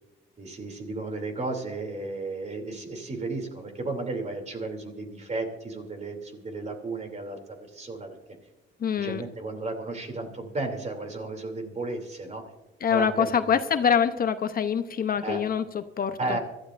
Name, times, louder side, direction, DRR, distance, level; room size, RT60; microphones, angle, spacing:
voice 1, 0.4-8.1 9.0-12.4 12.9-14.0 15.2-15.4 16.2-16.4, right 2 dB, 35° right, 4 dB, 2.9 m, -34 dB
voice 2, 8.8-9.2 12.8-16.4, left 7 dB, 50° left, 10 dB, 0.8 m, -25 dB
24.5 x 13.0 x 2.6 m, 1.1 s
cardioid pair, 90°, 20 cm